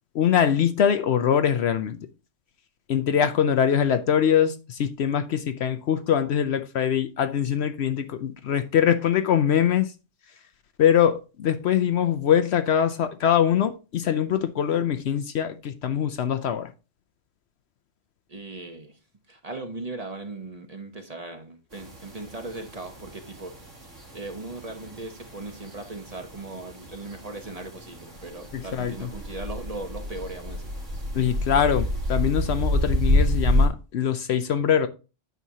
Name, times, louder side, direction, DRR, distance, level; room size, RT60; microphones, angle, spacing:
voice 1, 0.1-2.0 2.9-9.9 10.8-16.7 28.5-29.1 31.1-34.9, left 9 dB, 65° left, 0.8 m, -23 dB
voice 2, 18.3-19.0 19.3-23.7 24.1-30.7, right 2 dB, 35° right, 0.9 m, -38 dB
sound 1, 21.7-33.7, left 1 dB, 70° right, 2.5 m, -29 dB
9.2 x 6.1 x 2.7 m
omnidirectional pair, 1.3 m